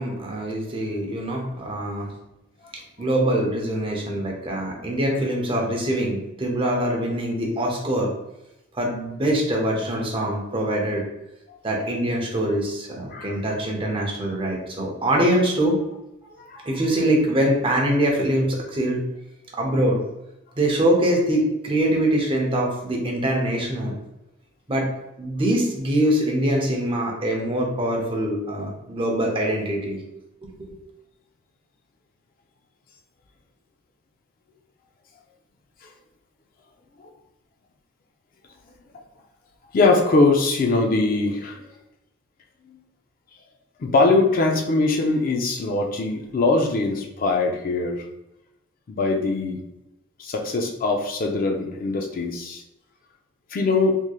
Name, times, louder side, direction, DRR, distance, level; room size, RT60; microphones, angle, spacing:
voice 1, 0.0-2.1 3.0-8.1 8.7-11.0 11.6-15.8 16.6-19.0 19.6-20.0 20.6-23.9 24.7-24.9 25.2-30.0 30.4-30.7, right 1 dB, 25° right, -1 dB, 0.7 m, -23 dB
voice 2, 39.7-41.7 42.7-42.8 43.8-48.1 48.9-49.6 50.2-52.6 53.5-54.0, left 3 dB, 45° left, 2 dB, 0.4 m, -22 dB
3.5 x 3.1 x 2.3 m, 0.89 s
head